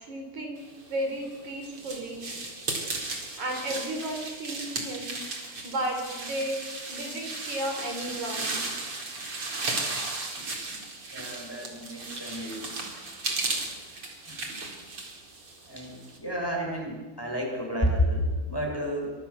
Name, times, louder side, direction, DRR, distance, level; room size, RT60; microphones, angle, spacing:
voice 1, 0.0-2.3 3.4-8.6, right 1 dB, 50° right, 3 dB, 5.1 m, -34 dB
sound 1, 1.0-16.2, right 3 dB, 35° right, 4.7 m, -35 dB
voice 2, 11.1-12.8 14.3-14.5 15.6-19.1, equal, 5° left, 0 dB, 6.2 m, -30 dB
29.5 x 26.5 x 7.1 m, 1.3 s
omnidirectional pair, 4.5 m